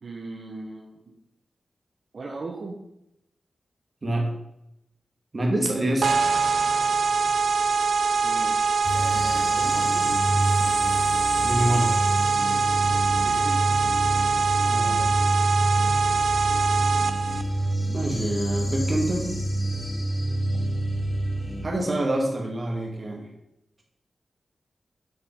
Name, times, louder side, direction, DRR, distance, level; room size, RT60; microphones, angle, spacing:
voice 1, 0.0-1.0 2.1-2.8 8.2-10.1 13.2-13.7, right 3 dB, 60° right, -1 dB, 1.4 m, -38 dB
voice 2, 5.3-6.1 11.4-12.0 14.7-15.1 17.9-19.3 21.6-23.3, right 1 dB, 40° right, 1 dB, 2.5 m, -26 dB
sound 1, 6.0-17.4, right 5 dB, 80° right, 0.6 m, -23 dB
sound 2, 8.8-21.6, right 1 dB, 55° left, 2.5 m, -27 dB
9.6 x 5.9 x 5.6 m, 0.82 s
wide cardioid pair, 90°, 0 cm